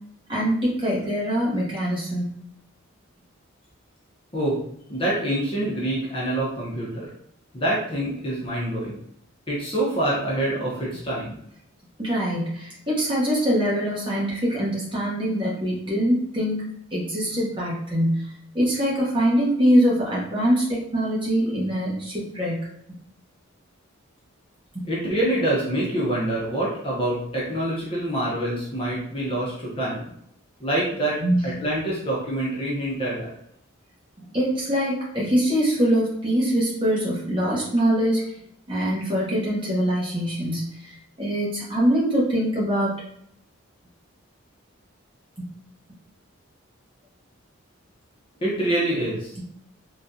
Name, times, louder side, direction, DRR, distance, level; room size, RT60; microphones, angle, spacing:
voice 1, 0.3-2.3 12.0-18.3 18.5-22.7 24.7-24.9 31.2-31.4 34.3-38.2 38.7-43.0 45.4-45.5, equal, 25° right, -6 dB, 1.0 m, -23 dB
voice 2, 4.9-7.1 7.5-9.0 9.5-11.4 24.8-30.0 30.6-31.2 31.4-33.3 48.4-49.5, right 1 dB, 25° left, -6 dB, 0.7 m, -26 dB
3.5 x 2.3 x 2.7 m, 0.74 s
head